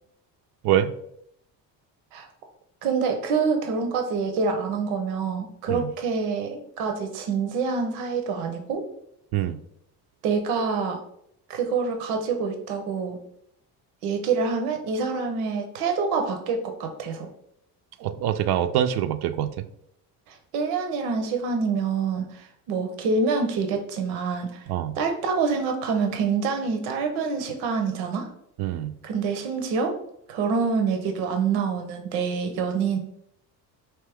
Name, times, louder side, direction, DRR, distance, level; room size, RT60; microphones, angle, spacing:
voice 1, 2.8-8.8 10.2-11.0 11.5-13.2 14.0-17.3 20.3-24.7 25.0-28.3 29.0-29.9 30.3-33.0, right 5 dB, 90° right, 5 dB, 0.8 m, -26 dB
voice 2, 18.0-19.5 24.7-25.0 28.6-28.9, right 11 dB, 60° right, 10 dB, 0.5 m, -24 dB
4.6 x 2.9 x 3.4 m, 0.73 s
supercardioid pair, 75°, 43 cm